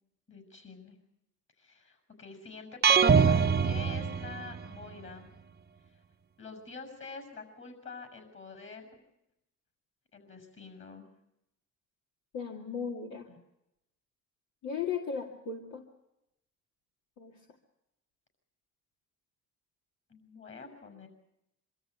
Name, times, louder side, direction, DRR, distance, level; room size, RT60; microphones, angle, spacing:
voice 1, 0.3-1.0 1.6-5.3 6.4-9.1 10.1-11.1 13.3-13.4 20.1-21.1, left 4 dB, 40° left, 7 dB, 6.5 m, -47 dB
sound 1, 2.8-4.8, right 6 dB, 35° right, 0.8 m, -24 dB
voice 2, 12.3-13.3 14.6-15.8 17.2-17.4, left 6 dB, 70° left, 1 dB, 2.3 m, -36 dB
24.0 x 13.5 x 9.1 m, 0.86 s
cardioid pair, 90°, 30 cm